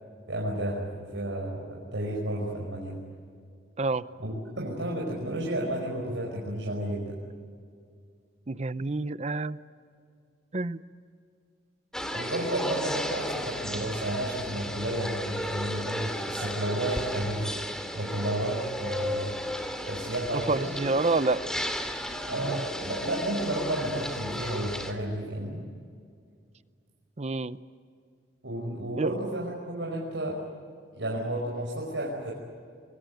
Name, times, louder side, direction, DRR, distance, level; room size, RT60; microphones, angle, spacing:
voice 1, 0.3-3.0 4.2-7.1 12.0-17.5 17.9-19.3 19.8-20.7 22.3-25.6 28.4-30.4 30.9-32.3, right 1 dB, 85° right, -2 dB, 5.4 m, -32 dB
voice 2, 8.5-9.6 10.5-10.8 20.3-21.4 22.4-22.6 27.2-27.6 29.0-29.1, right 3 dB, 35° right, 15 dB, 0.7 m, -28 dB
sound 1, 11.9-24.9, equal, 5° left, 2.5 m, -34 dB
27.5 x 22.0 x 9.3 m, 2.2 s
head